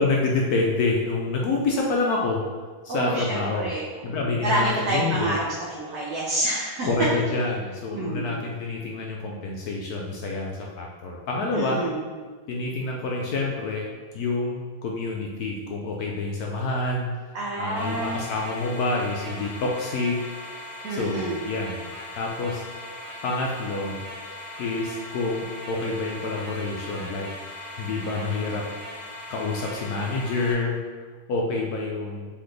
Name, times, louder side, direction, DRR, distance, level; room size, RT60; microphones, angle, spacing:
voice 1, 0.0-2.4 2.8-3.7 4.0-5.4 6.8-11.8 12.5-13.9 14.1-17.1 17.6-20.2 20.9-21.8 22.2-22.6 23.2-24.0 24.6-27.3 27.8-28.7 29.3-30.8 31.3-32.3, left 3 dB, 75° left, -1 dB, 0.8 m, -27 dB
voice 2, 2.9-3.9 4.2-6.9 7.9-8.3 11.5-12.0 17.3-18.2 20.8-21.4, right 2 dB, 65° right, -5 dB, 1.1 m, -28 dB
sound 1, 17.8-30.5, left 1 dB, 30° left, 0.6 m, -39 dB
4.0 x 3.8 x 3.2 m, 1.5 s
omnidirectional pair, 2.1 m